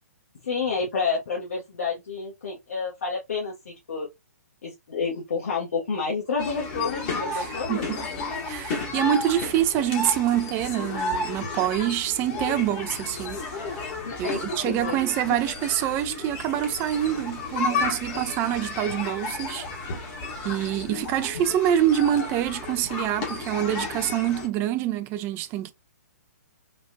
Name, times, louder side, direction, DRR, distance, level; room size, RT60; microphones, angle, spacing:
voice 1, 0.4-4.1 4.6-8.1 14.0-14.4 14.7-15.0, left 5 dB, 60° left, 1.3 m, -29 dB
sound 1, 6.4-24.5, left 3 dB, 35° left, 1.3 m, -33 dB
voice 2, 7.3-8.0 8.5-13.8 14.2-19.7 20.4-25.7, right 11 dB, 25° right, 0.4 m, -26 dB
3.9 x 2.4 x 2.2 m
figure-of-eight pair, 125°, 9 cm